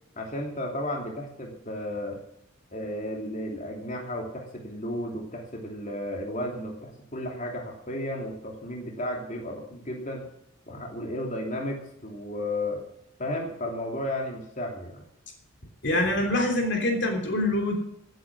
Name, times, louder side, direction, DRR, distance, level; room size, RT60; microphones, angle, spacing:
voice 1, 0.2-2.2 2.7-10.3 10.7-12.8 13.2-15.0, left 1 dB, 35° left, 1 dB, 3.1 m, -33 dB
voice 2, 15.8-17.7, left 1 dB, 55° left, 3 dB, 3.2 m, -25 dB
17.5 x 9.1 x 6.2 m, 0.77 s
head